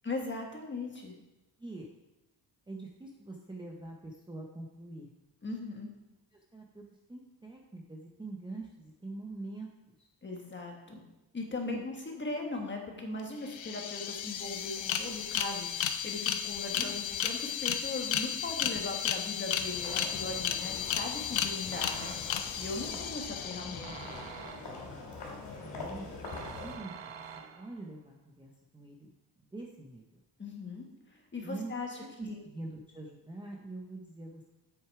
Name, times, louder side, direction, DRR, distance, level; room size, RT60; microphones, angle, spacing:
voice 1, 0.0-1.2 5.4-5.9 10.2-11.0 11.3-22.2 22.6-24.1 30.4-30.9 31.3-32.0 32.3-32.4, left 3 dB, 25° left, 1 dB, 1.4 m, -39 dB
voice 2, 2.7-5.1 6.3-9.7 10.0-10.1 11.6-11.8 12.5-12.6 16.7-16.9 22.9-23.0 25.6-27.2 27.6-29.1 29.4-30.2 31.4-31.7 32.0-34.4, right 2 dB, 10° right, -1 dB, 0.6 m, -44 dB
sound 1, 13.2-13.3 13.5-24.3, left 9 dB, 85° left, 0.7 m, -34 dB
sound 2, 19.6-26.8, left 3 dB, 65° left, 2.9 m, -44 dB
sound 3, 19.8-20.5 21.7-22.6 23.8-25.0 26.2-27.9, right 7 dB, 80° right, 0.9 m, -47 dB
8.1 x 6.3 x 4.7 m, 0.97 s
wide cardioid pair, 165°, 45 cm